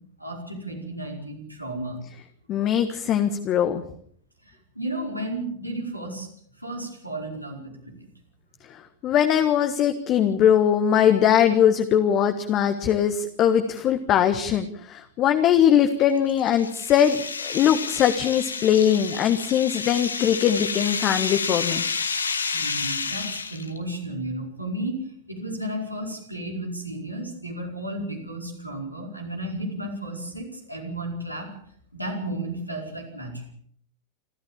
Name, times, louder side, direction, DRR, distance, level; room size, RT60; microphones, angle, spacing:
voice 1, 0.2-2.0 4.4-6.3 6.6-7.9 22.5-25.0 25.3-31.5 31.9-33.4, right 1 dB, 90° right, 0 dB, 5.0 m, -33 dB
voice 2, 2.5-3.8 8.7-21.8, left 9 dB, 35° left, 8 dB, 1.4 m, -21 dB
sound 1, 16.0-23.8, left 5 dB, 75° left, 1.8 m, -30 dB
27.5 x 13.5 x 7.3 m, 0.62 s
figure-of-eight pair, 90°, 0 cm